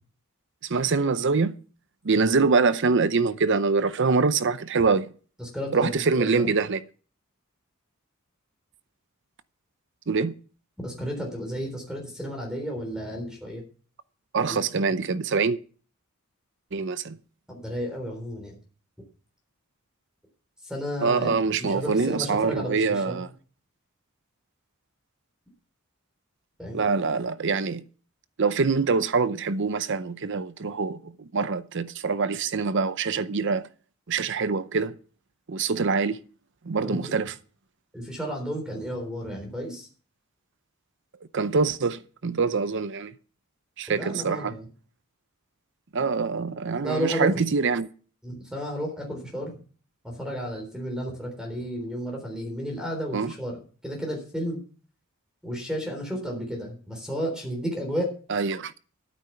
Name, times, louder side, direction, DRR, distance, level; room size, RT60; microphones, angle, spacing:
voice 1, 0.6-1.6 2.0-5.1 5.7-6.8 10.1-10.4 14.3-15.6 16.7-17.2 21.0-23.3 26.7-27.8 28.4-33.7 34.1-34.9 35.5-36.2 36.6-37.4 41.3-43.1 43.8-44.5 45.9-47.9 53.1-53.3 58.3-58.7, right 4 dB, 55° right, 0.6 m, -24 dB
voice 2, 5.4-5.9 6.2-6.5 10.8-13.6 14.4-14.6 17.5-18.5 20.6-23.2 26.6-26.8 36.8-37.1 37.9-39.9 43.9-44.7 46.8-47.4 48.2-49.5 50.0-53.6 53.8-54.6 55.4-58.1, equal, 5° right, 3.7 m, -32 dB
12.0 x 9.5 x 5.8 m
head